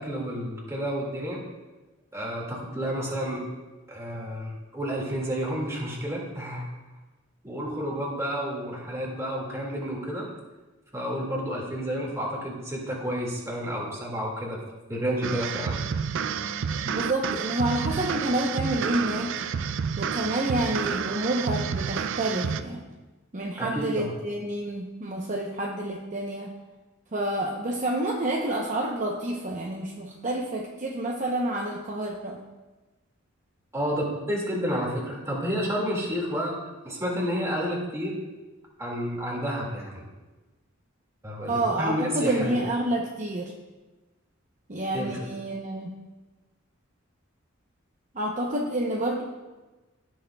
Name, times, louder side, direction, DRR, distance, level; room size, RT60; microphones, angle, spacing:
voice 1, 0.0-1.4 2.1-3.4 3.9-6.7 7.4-10.2 10.9-14.6 14.9-15.8 23.6-24.1 33.7-36.6 36.8-38.2 38.8-40.0 41.2-42.6 44.9-45.1, equal, 15° right, -3 dB, 2.0 m, -30 dB
sound 1, 15.2-22.6, right 6 dB, 65° right, 0.4 m, -30 dB
voice 2, 16.8-19.4 20.0-22.8 23.3-26.5 27.1-32.4 41.4-43.5 44.7-45.9 48.1-49.2, right 1 dB, 40° right, -1 dB, 0.8 m, -28 dB
16.0 x 6.5 x 2.3 m, 1.2 s
head